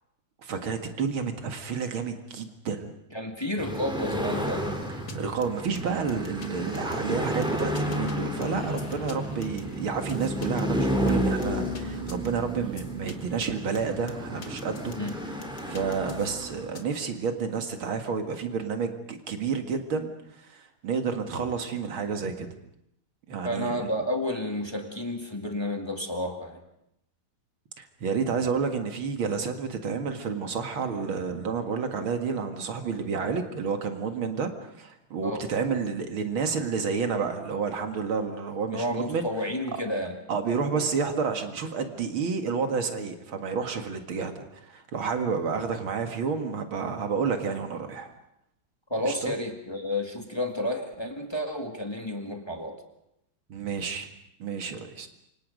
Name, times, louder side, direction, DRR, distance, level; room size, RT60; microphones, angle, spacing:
voice 1, 0.4-2.9 5.0-14.9 15.6-22.5 23.3-23.9 27.8-39.3 39.7-39.8 40.3-48.1 49.0-49.3 53.5-54.1 54.4-55.1, right 5 dB, 85° right, 6 dB, 2.7 m, -30 dB
voice 2, 3.1-4.7 15.0-15.1 23.4-26.6 35.2-35.4 38.7-40.2 48.9-52.8, left 1 dB, 15° left, 3 dB, 2.0 m, -31 dB
sound 1, 3.6-17.0, equal, ahead, 3.5 m, -32 dB
sound 2, 5.1-5.2 5.4-5.5 5.7-6.5 6.7-8.1 8.4-10.6 11.1-11.8 12.1-12.3 12.8-13.1 13.4-13.5 13.7-15.1 15.4-16.8, left 4 dB, 50° left, 2.4 m, -44 dB
27.5 x 25.0 x 5.3 m, 0.78 s
omnidirectional pair, 2.2 m